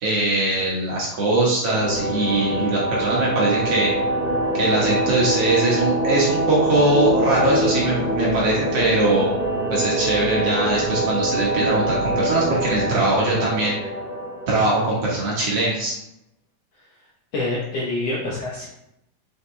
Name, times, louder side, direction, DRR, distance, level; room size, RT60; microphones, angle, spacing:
voice 1, 0.0-3.9 4.5-9.3 9.7-13.7 14.5-16.0, right 2 dB, 55° right, -5 dB, 2.1 m, -21 dB
sound 1, 1.7-15.3, right 1 dB, 40° left, 2.2 m, -24 dB
voice 2, 17.3-18.7, left 2 dB, 65° left, -4 dB, 1.6 m, -26 dB
6.3 x 5.4 x 3.3 m, 0.82 s
omnidirectional pair, 3.9 m